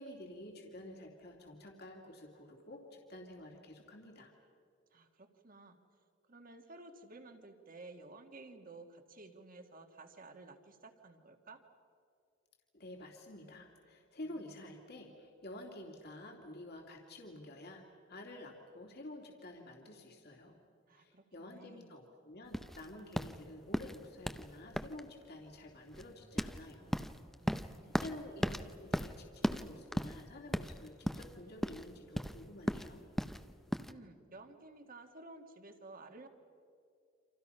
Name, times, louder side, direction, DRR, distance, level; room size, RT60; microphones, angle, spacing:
voice 1, 0.0-4.3 12.7-20.6 21.0-27.0 28.0-33.0, left 1 dB, 55° left, 1 dB, 2.8 m, -50 dB
voice 2, 4.9-5.8 6.3-11.6 14.3-14.4 20.9-22.0 27.4-28.0 33.9-36.3, right 2 dB, 45° right, 6 dB, 2.0 m, -54 dB
sound 1, 22.5-33.9, equal, ahead, 0.7 m, -38 dB
29.0 x 26.5 x 5.7 m, 2.4 s
head